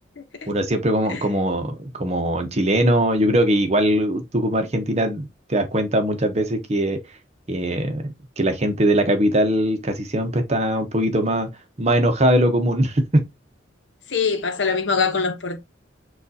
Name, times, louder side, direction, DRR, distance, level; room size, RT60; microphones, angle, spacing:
voice 1, 0.5-7.0 7.5-11.5 11.8-13.2, right 1 dB, 35° right, 0.8 m, -21 dB
voice 2, 14.1-15.6, left 5 dB, 75° left, 0.8 m, -23 dB
6.4 x 2.4 x 2.7 m
head